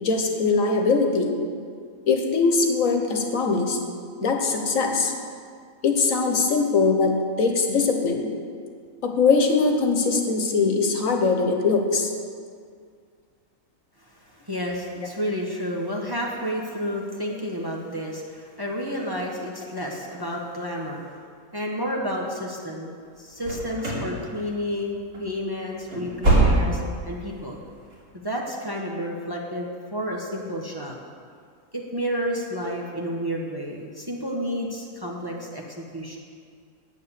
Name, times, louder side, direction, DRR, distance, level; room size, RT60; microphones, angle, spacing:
voice 1, 0.0-1.3 2.1-3.8 4.2-5.1 5.8-8.3 9.0-12.1, left 4 dB, 70° left, 3 dB, 1.5 m, -21 dB
voice 2, 14.0-21.0 21.5-22.9 23.2-27.6 28.2-30.9 31.7-36.2, equal, 20° right, -2 dB, 1.0 m, -31 dB
sound 1, 23.4-24.1 24.4-24.8 25.1-25.3 25.7-27.0 27.3-27.4 27.9-28.0, right 2 dB, 85° right, 3.4 m, -22 dB
9.5 x 8.5 x 6.8 m, 2.1 s
omnidirectional pair, 1.5 m